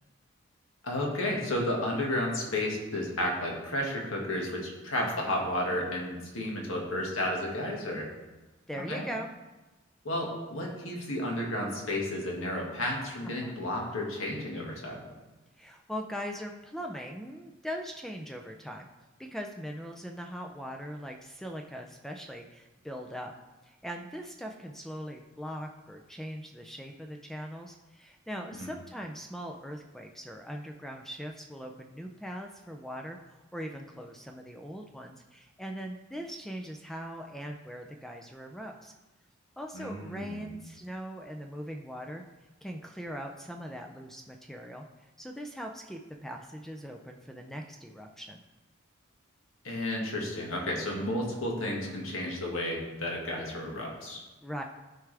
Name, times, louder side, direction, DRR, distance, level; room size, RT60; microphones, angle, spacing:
voice 1, 0.8-8.1 8.9-9.0 10.0-15.0 28.5-28.7 39.7-40.5 49.6-54.2, left 1 dB, 75° left, -1 dB, 1.8 m, -32 dB
voice 2, 5.0-5.3 8.7-9.3 13.2-13.6 15.6-18.9 19.2-23.3 23.6-38.9 39.6-42.2 42.6-44.9 45.2-48.4 54.4-54.6, equal, ahead, 3 dB, 0.4 m, -40 dB
12.5 x 4.7 x 3.4 m, 1.1 s
head